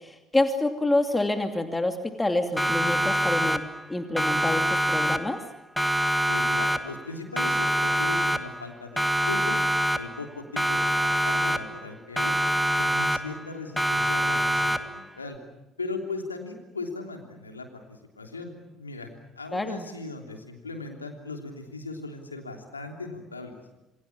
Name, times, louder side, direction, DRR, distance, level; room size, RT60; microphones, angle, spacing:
voice 1, 0.0-3.6 3.9-5.4 19.5-19.9, left 2 dB, 15° left, 5 dB, 2.6 m, -27 dB
Siren, 2.6-3.9 4.2-5.5 5.8-7.1 7.4-8.7 9.0-10.3 10.6-11.9 12.2-13.5 13.8-15.1, equal, 5° right, 1.8 m, -25 dB
voice 2, 6.3-9.6 9.9-15.4 15.8-19.1 19.3-23.6, left 3 dB, 90° left, 3 dB, 3.2 m, -38 dB
28.0 x 26.0 x 7.4 m, 0.98 s
figure-of-eight pair, 55°, 0 cm